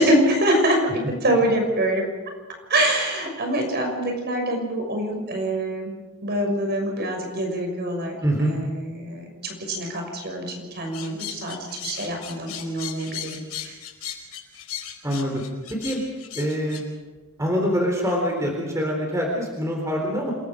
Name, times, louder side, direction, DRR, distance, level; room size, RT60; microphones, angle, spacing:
voice 1, 0.0-2.1 2.7-11.6 11.8-13.7, right 1 dB, 50° right, 2 dB, 6.2 m, -25 dB
voice 2, 8.2-8.6 15.0-15.4 15.8-16.0 16.4-16.8 17.4-20.3, equal, 15° right, 0 dB, 3.9 m, -24 dB
sound 1, 10.9-16.8, left 10 dB, 90° left, 4.9 m, -36 dB
28.0 x 21.5 x 5.2 m, 1.2 s
head